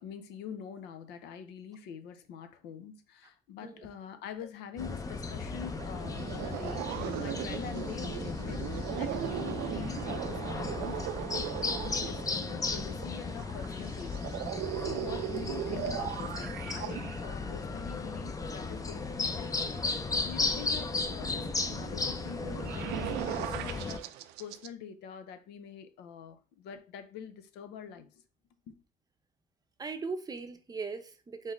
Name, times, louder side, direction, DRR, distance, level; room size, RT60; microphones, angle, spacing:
voice 1, 0.0-14.3 14.8-24.1 24.4-28.2 28.7-28.8, left 7 dB, 90° left, 0.6 m, -45 dB
sound 1, 4.8-24.0, left 4 dB, 20° left, 0.5 m, -35 dB
sound 2, 5.8-24.7, right 12 dB, 90° right, 0.4 m, -39 dB
voice 2, 29.8-31.5, right 4 dB, 20° right, 0.7 m, -39 dB
4.0 x 3.7 x 3.1 m
cardioid pair, 110°, 17 cm